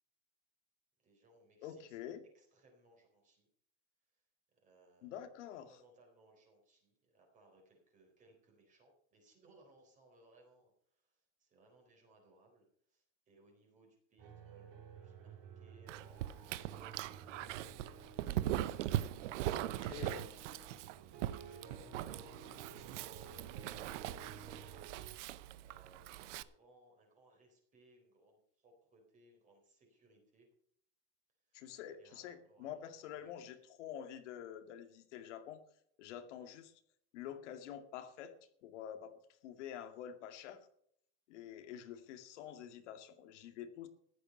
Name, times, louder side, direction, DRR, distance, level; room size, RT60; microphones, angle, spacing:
voice 1, 1.0-2.0 2.3-3.5 4.1-4.2 4.5-5.2 5.6-18.0 19.6-30.5 31.4-32.8 33.1-33.5 36.3-36.5, right 2 dB, 20° right, 1 dB, 3.9 m, -66 dB
voice 2, 1.6-2.2 5.0-5.7 19.6-20.3 31.5-35.6 36.0-36.7 37.1-38.3 38.6-39.1 39.4-40.7 41.3-43.9, left 10 dB, 80° left, 7 dB, 2.2 m, -47 dB
sound 1, 14.2-25.2, right 5 dB, 40° right, 4.9 m, -55 dB
Dog, 15.9-26.4, right 13 dB, 85° right, 0.9 m, -40 dB
15.0 x 11.0 x 5.4 m, 0.68 s
supercardioid pair, 175°, 35 cm